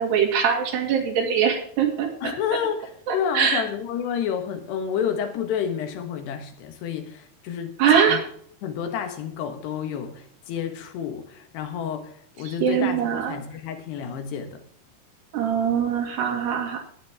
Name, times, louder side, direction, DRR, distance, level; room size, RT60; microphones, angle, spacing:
voice 1, 0.0-2.1 3.1-3.6 7.8-8.2 12.6-13.4 15.3-16.8, right 7 dB, 85° right, 1 dB, 4.4 m, -22 dB
voice 2, 2.2-8.2 8.6-14.6, left 8 dB, 85° left, 6 dB, 3.6 m, -30 dB
14.5 x 10.0 x 3.6 m, 0.62 s
omnidirectional pair, 4.7 m